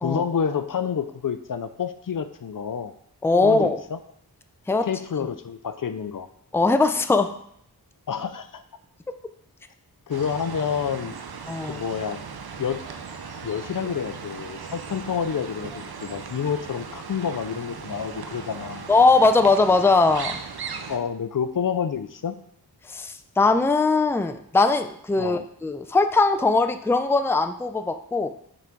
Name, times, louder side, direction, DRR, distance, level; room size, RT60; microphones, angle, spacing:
voice 1, 0.0-2.9 3.4-4.0 4.8-6.3 8.1-8.6 10.1-11.1 11.6-12.2 12.6-12.8 13.4-18.9 20.9-22.4 25.2-25.4, left 7 dB, 55° left, 10 dB, 0.5 m, -28 dB
voice 2, 3.2-3.8 4.7-4.9 6.5-7.3 11.5-11.8 18.9-20.4 22.9-28.3, left 3 dB, 5° left, 7 dB, 0.4 m, -20 dB
sound 1, 10.1-21.0, right 5 dB, 70° right, 0.7 m, -38 dB
5.8 x 3.9 x 4.5 m, 0.69 s
wide cardioid pair, 45°, 39 cm